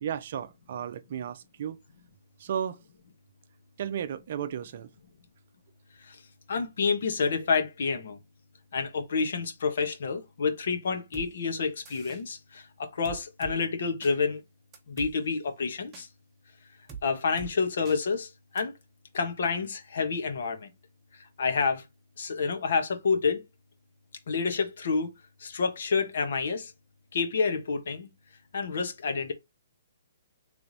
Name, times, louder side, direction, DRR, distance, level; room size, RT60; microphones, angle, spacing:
voice 1, 0.0-1.8 2.4-2.8 3.8-4.9, right 9 dB, 55° right, 0.5 m, -34 dB
voice 2, 6.5-8.2 8.7-14.4 14.9-16.1 17.0-18.7 19.1-20.7 21.1-21.8 22.2-23.4 24.3-25.1 25.4-26.7 27.1-28.1 28.5-29.3, left 5 dB, 70° left, 1.1 m, -29 dB
sound 1, 11.1-11.3 11.9-12.2 13.1-13.6 14.0-14.1 14.7-15.1 15.9-16.1 16.9-17.0 17.4-17.5 17.9-18.0 18.6-18.7, right 6 dB, 20° right, 1.0 m, -42 dB
3.4 x 3.2 x 4.0 m
hypercardioid pair, 150°, 0 cm